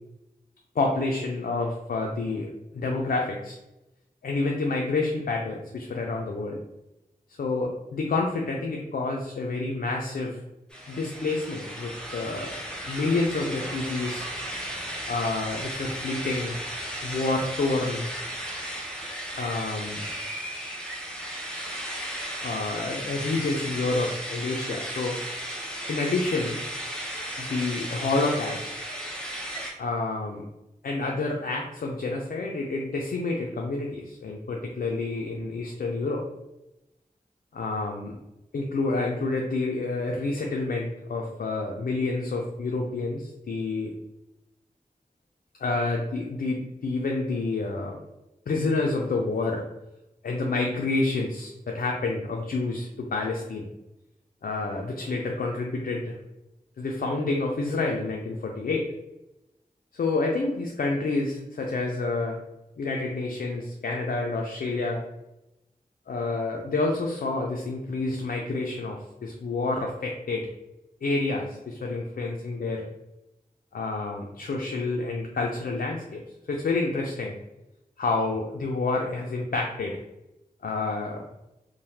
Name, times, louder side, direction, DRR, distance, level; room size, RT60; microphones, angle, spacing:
voice 1, 0.8-3.6 4.2-6.6 7.3-10.4 10.9-12.5 12.9-14.3 15.1-16.6 17.0-18.1 19.4-20.1 22.4-25.2 25.9-26.6 27.4-28.7 29.8-30.4 30.8-36.2 37.5-38.1 38.5-43.9 45.6-48.0 48.5-49.6 50.2-53.7 54.4-56.1 56.8-58.9 59.9-62.4 62.8-65.0 66.1-70.5 71.0-72.9 73.7-76.2 76.5-77.4 78.0-80.0 80.6-81.2, left 3 dB, 75° left, 0 dB, 0.4 m, -28 dB
sound 1, 10.7-29.7, equal, 5° left, 0.7 m, -35 dB
3.1 x 2.0 x 2.7 m, 0.94 s
wide cardioid pair, 50°, 15 cm